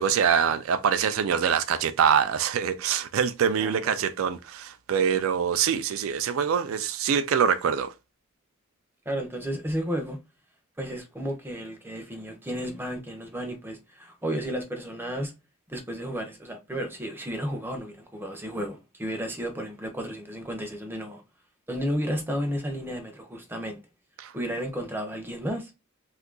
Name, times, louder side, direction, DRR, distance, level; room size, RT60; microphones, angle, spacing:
voice 1, 0.0-7.9 24.2-24.3, right 7 dB, 70° right, 0.3 m, -24 dB
voice 2, 3.6-3.9 9.1-10.2 10.8-15.3 15.7-21.2 21.7-23.8 24.3-25.7, equal, 10° right, 0.5 m, -33 dB
2.7 x 2.4 x 3.7 m
head